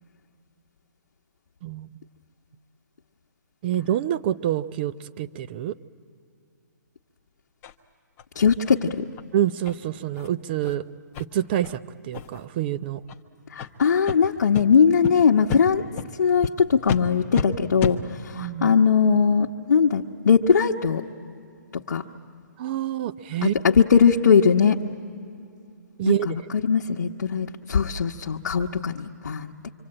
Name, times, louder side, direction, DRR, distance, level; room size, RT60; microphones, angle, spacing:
voice 1, 3.6-5.8 9.3-10.8 11.2-13.0 18.3-18.7 22.6-23.5 26.0-26.4, right 11 dB, 30° right, 14 dB, 0.6 m, -27 dB
sound 1, 7.6-7.7 8.2-8.3 8.7-8.8 9.1-9.2 9.6-9.7 10.1-10.3 10.6-10.7 11.1-11.2 11.6-11.8 12.1-12.5 13.0-13.2 13.6-13.7 14.1-14.2 14.5-14.6 15.0-15.1 15.5-15.6 16.0-16.1 16.4-16.5 16.9-17.0 17.3-17.5 17.8-18.0, left 7 dB, 20° left, 0.9 m, -30 dB
voice 2, 8.3-9.1 13.5-15.9 16.2-21.1 21.7-22.0 23.4-24.8 26.0-29.5, left 6 dB, 65° left, -1 dB, 1.1 m, -20 dB
26.0 x 25.5 x 8.8 m, 2.5 s
hypercardioid pair, 150°, 10 cm